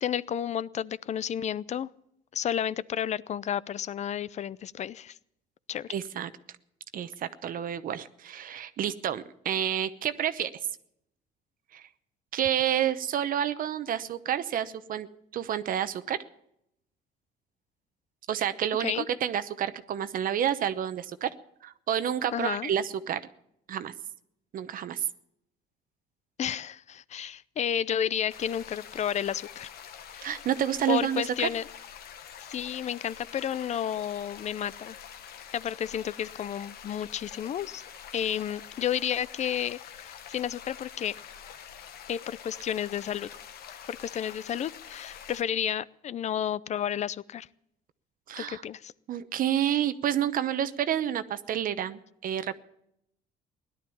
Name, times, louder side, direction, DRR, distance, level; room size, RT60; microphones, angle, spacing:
voice 1, 0.0-1.9 2.3-5.2 5.7-5.9 18.8-19.1 22.3-22.7 26.4-29.7 30.1-30.3 30.9-31.6 32.5-35.0 35.5-37.8 38.1-41.2 42.1-43.3 43.9-47.5 48.4-48.9, left 9 dB, 45° left, 20 dB, 0.5 m, -31 dB
voice 2, 5.9-6.3 6.9-10.5 11.7-11.8 12.3-15.1 15.3-16.2 18.3-21.3 21.6-23.2 23.7-23.9 24.5-25.1 30.2-31.5 48.3-48.6 49.1-52.5, right 10 dB, 55° right, 12 dB, 0.9 m, -29 dB
sound 1, 28.3-45.4, left 9 dB, 65° left, 1.2 m, -46 dB
17.0 x 12.0 x 7.0 m, 0.76 s
cardioid pair, 110°, 17 cm